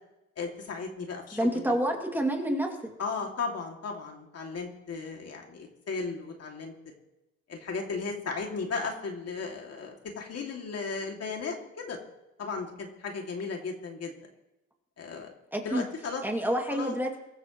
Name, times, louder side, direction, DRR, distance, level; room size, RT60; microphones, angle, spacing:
voice 1, 0.4-1.8 3.0-6.7 7.5-12.0 12.4-14.1 15.0-15.3 15.6-16.2 16.7-16.9, left 4 dB, 55° left, 1 dB, 2.6 m, -35 dB
voice 2, 1.3-2.7 15.5-15.9 16.2-17.2, right 1 dB, 5° right, 1 dB, 2.5 m, -28 dB
23.0 x 13.0 x 3.2 m, 0.94 s
cardioid pair, 90°, 30 cm